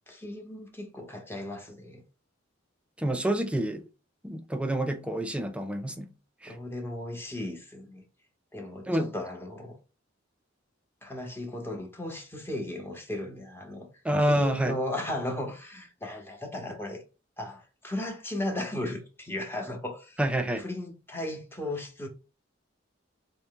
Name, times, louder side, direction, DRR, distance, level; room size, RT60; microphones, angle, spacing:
voice 1, 0.1-2.0 6.5-8.0 8.5-9.8 11.0-13.9 14.3-17.0 17.4-20.2 20.6-22.1, left 1 dB, 10° left, 0.8 m, -36 dB
voice 2, 3.0-3.9 4.2-6.1 6.4-6.6 8.9-9.1 14.0-14.8 20.2-20.6, right 1 dB, 5° right, 0.4 m, -28 dB
4.0 x 2.1 x 3.7 m
head